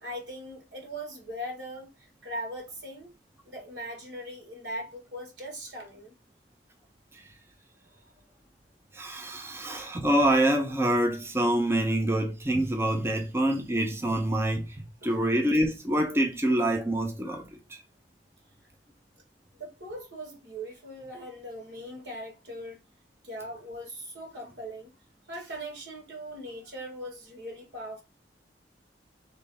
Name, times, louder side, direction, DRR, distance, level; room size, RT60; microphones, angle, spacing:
voice 1, 0.0-3.1 3.5-6.1 15.0-15.1 19.6-22.8 23.2-24.9 25.3-28.0, equal, 75° right, 1.9 m, -40 dB
voice 2, 8.9-14.8 15.0-17.8, right 1 dB, 15° right, 0.5 m, -26 dB
3.3 x 3.2 x 4.1 m
head